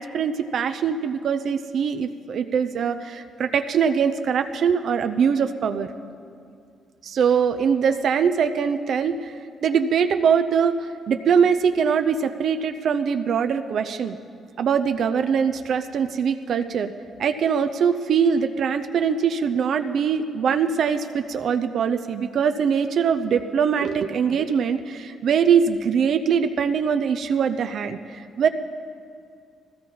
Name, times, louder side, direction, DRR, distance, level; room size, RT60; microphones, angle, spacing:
voice 1, 0.0-5.9 7.0-14.2 14.6-16.9 17.2-28.5, right 7 dB, 65° right, 8 dB, 0.6 m, -22 dB
18.5 x 15.5 x 4.2 m, 2.3 s
cardioid pair, 90°, 0 cm